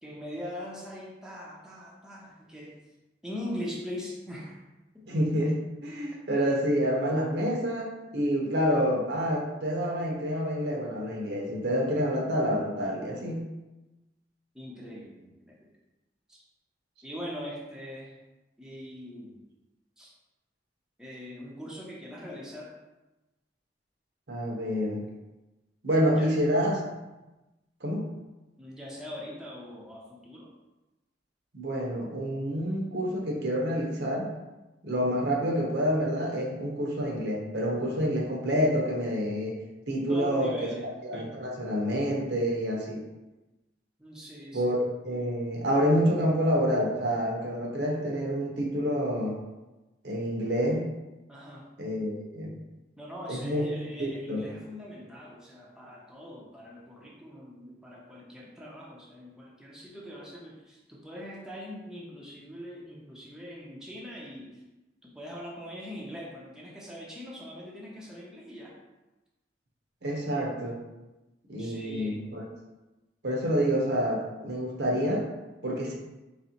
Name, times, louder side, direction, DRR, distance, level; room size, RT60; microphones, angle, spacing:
voice 1, 0.0-2.8 3.2-4.6 14.5-15.6 16.3-16.4 17.0-18.2 18.6-19.4 20.0-20.1 21.0-22.7 26.1-26.4 28.6-30.5 40.1-40.9 44.0-44.8 51.3-51.7 53.0-64.6 65.0-68.8 71.6-72.4, equal, 5° right, -4 dB, 0.5 m, -41 dB
voice 2, 5.1-13.5 24.3-25.0 25.8-26.8 27.8-28.1 31.5-34.3 34.8-39.5 39.9-40.7 41.1-43.0 44.5-44.8 45.0-49.4 50.0-50.9 51.8-52.5 53.3-53.6 54.0-54.5 70.0-70.8 71.5-72.4 73.2-75.3 75.6-75.9, equal, 65° right, 0 dB, 0.8 m, -28 dB
4.1 x 3.1 x 2.9 m, 1.0 s
head